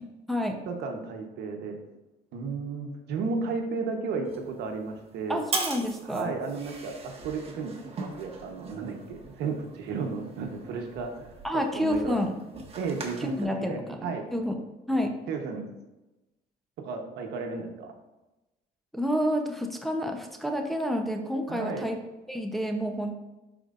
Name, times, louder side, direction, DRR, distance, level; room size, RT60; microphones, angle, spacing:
voice 1, 0.0-0.6 5.3-6.3 11.4-12.4 13.2-14.6 14.9-15.1 18.9-22.0 22.3-23.2, equal, ahead, 2 dB, 0.8 m, -29 dB
voice 2, 0.7-1.8 2.3-5.4 6.0-11.3 11.7-12.2 12.8-14.2 15.3-15.6 16.8-17.9 21.5-21.9, right 4 dB, 80° right, 4 dB, 1.1 m, -33 dB
sound 1, 4.3-13.4, right 4 dB, 35° right, 1.4 m, -40 dB
11.0 x 4.5 x 2.6 m, 1.0 s
cardioid pair, 110°, 17 cm